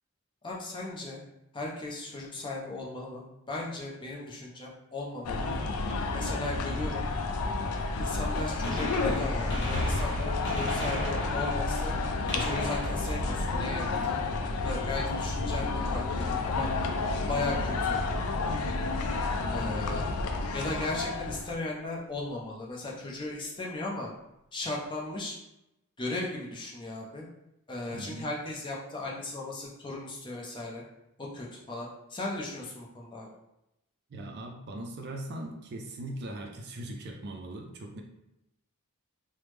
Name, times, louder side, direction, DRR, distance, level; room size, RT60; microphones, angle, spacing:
voice 1, 0.4-1.2 1.5-5.5 6.1-7.1 8.0-12.0 12.3-14.2 14.6-16.7 17.3-18.0 19.5-20.1 20.5-24.1 24.5-25.4 26.0-27.2 27.7-30.8 31.2-33.3, left 2 dB, 20° left, -3 dB, 0.5 m, -37 dB
sound 1, 5.2-21.5, left 3 dB, 75° left, 0.4 m, -30 dB
Gunshot gunfire, 8.6-14.3 16.3-16.4 17.4-17.5 19.1-19.2 20.6-20.7 20.9-21.0, equal, 55° left, 0.9 m, -38 dB
voice 2, 27.9-28.3 29.0-29.1 34.1-38.0, right 1 dB, 45° right, 2 dB, 0.4 m, -40 dB
3.2 x 2.0 x 3.1 m, 0.87 s
head